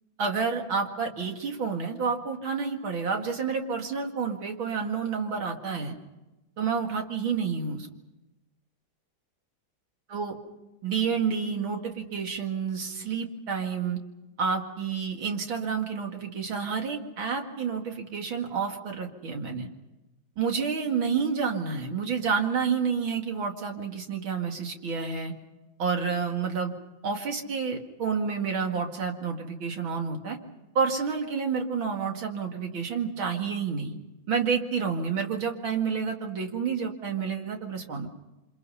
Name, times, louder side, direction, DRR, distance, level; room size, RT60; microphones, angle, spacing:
voice 1, 0.2-6.0 6.6-7.9 10.1-10.3 10.8-14.0 14.4-19.7 20.4-25.3 25.8-26.7 27.0-30.4 30.7-34.0 34.3-38.1, right 6 dB, 80° right, 3 dB, 3.0 m, -29 dB
28.5 x 26.0 x 5.7 m, 1.0 s
omnidirectional pair, 2.2 m